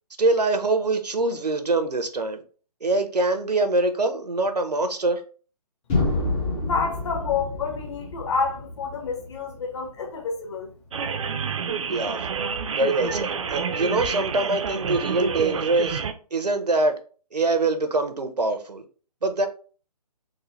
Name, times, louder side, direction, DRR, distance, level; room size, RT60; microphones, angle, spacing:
voice 1, 0.2-2.4 2.8-5.2 11.9-12.3 12.7-16.0 16.3-17.0 17.3-18.8 19.2-19.5, right 2 dB, 85° right, 0.7 m, -24 dB
sound 1, 5.9-9.9, left 2 dB, 10° left, 0.4 m, -28 dB
voice 2, 6.6-10.7, left 5 dB, 45° left, 1.0 m, -28 dB
sound 2, 10.9-16.1, right 6 dB, 50° right, 0.4 m, -28 dB
3.8 x 2.1 x 3.1 m
figure-of-eight pair, 140°, 20 cm